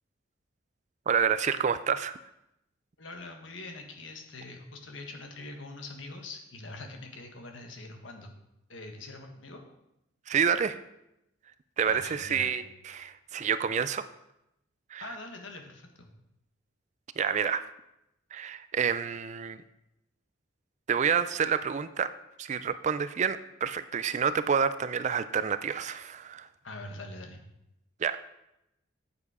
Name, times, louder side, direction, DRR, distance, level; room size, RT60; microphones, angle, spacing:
voice 1, 1.1-2.2 10.3-10.8 11.8-14.1 14.9-15.1 17.2-17.6 18.3-19.6 20.9-22.1 22.4-26.5 28.0-28.2, right 7 dB, 35° right, 13 dB, 0.3 m, -28 dB
voice 2, 3.0-8.3 8.7-9.6 11.8-12.5 15.0-16.1 26.6-27.4, left 2 dB, 75° left, 3 dB, 1.5 m, -43 dB
8.5 x 7.1 x 4.9 m, 0.86 s
head